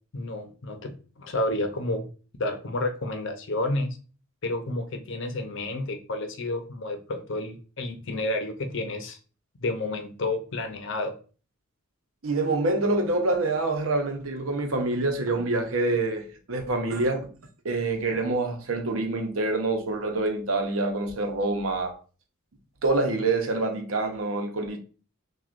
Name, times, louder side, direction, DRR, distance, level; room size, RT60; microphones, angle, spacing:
voice 1, 0.1-2.1 2.4-4.0 4.4-9.2 9.6-11.1, left 2 dB, 65° left, 0.7 m, -30 dB
voice 2, 12.2-17.3 17.6-22.0 22.8-24.8, right 2 dB, 85° right, 0.8 m, -26 dB
6.0 x 2.4 x 2.5 m
head